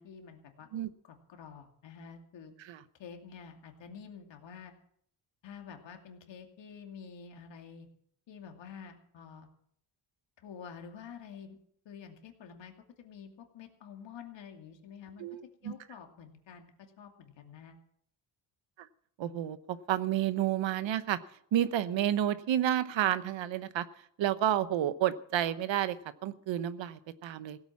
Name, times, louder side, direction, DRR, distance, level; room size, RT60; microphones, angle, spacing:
voice 1, 0.0-0.7 1.1-2.5 3.0-4.7 5.4-7.9 8.3-9.5 10.4-11.6 11.8-15.3 15.6-17.8, left 7 dB, 70° left, 4 dB, 2.6 m, -49 dB
voice 2, 15.2-15.7 18.8-18.9 19.2-21.2 21.5-23.9 24.2-25.9 26.2-27.6, right 11 dB, 75° right, 14 dB, 1.0 m, -30 dB
16.5 x 8.8 x 7.3 m, 0.65 s
cardioid pair, 110°, 45 cm